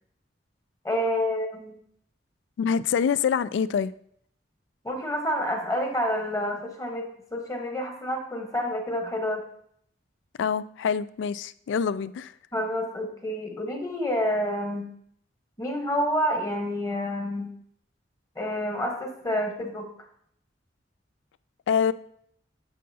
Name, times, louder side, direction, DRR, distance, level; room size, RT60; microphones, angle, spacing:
voice 1, 0.8-1.8 4.8-9.4 12.5-14.9 15.6-17.5 18.3-19.9, equal, 20° left, 1.2 m, -28 dB
voice 2, 2.6-3.9 10.4-12.3 21.7-21.9, left 7 dB, 70° left, 0.3 m, -25 dB
8.9 x 6.5 x 2.8 m
head